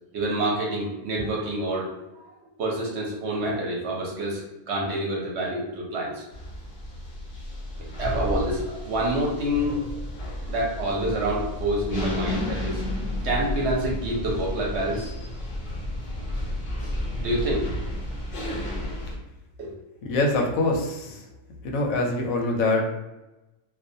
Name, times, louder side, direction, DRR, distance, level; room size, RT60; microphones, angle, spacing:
voice 1, 0.1-2.2 2.6-6.2 8.0-9.8 10.5-12.8 13.2-15.1 17.2-17.6 19.6-19.7, right 1 dB, 65° right, -3 dB, 0.8 m, -27 dB
sound 1, 6.3-19.1, left 1 dB, 60° left, 0.5 m, -32 dB
voice 2, 20.1-21.2 21.6-22.8, left 2 dB, 85° left, 1 dB, 1.0 m, -24 dB
2.4 x 2.1 x 2.6 m, 1.0 s
omnidirectional pair, 1.4 m